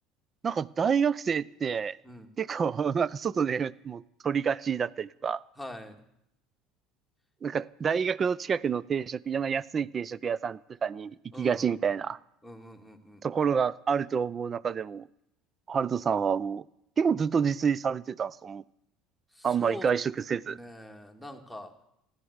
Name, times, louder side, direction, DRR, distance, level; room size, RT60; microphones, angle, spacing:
voice 1, 0.4-2.0 2.4-5.4 7.4-12.2 13.2-15.1 15.7-16.6 17.0-18.6 19.4-20.6, right 6 dB, 30° right, 0.5 m, -28 dB
voice 2, 5.6-5.9 11.3-11.8 12.4-13.2 19.3-19.9 20.5-21.7, left 1 dB, ahead, 2.0 m, -43 dB
15.5 x 11.5 x 8.1 m
supercardioid pair, 110°, 0 cm